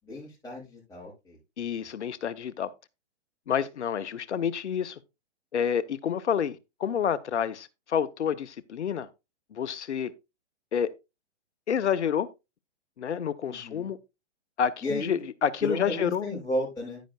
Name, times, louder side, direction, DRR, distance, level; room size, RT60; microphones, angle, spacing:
voice 1, 0.1-1.4 13.5-13.9 14.8-15.1 15.6-17.0, left 1 dB, 10° left, 6.2 m, -33 dB
voice 2, 1.6-2.7 3.5-5.0 5.5-9.1 9.5-10.1 10.7-10.9 11.7-12.3 13.0-14.0 14.6-16.3, left 8 dB, 75° left, 0.7 m, -29 dB
10.0 x 10.0 x 2.3 m
hypercardioid pair, 125°, 35 cm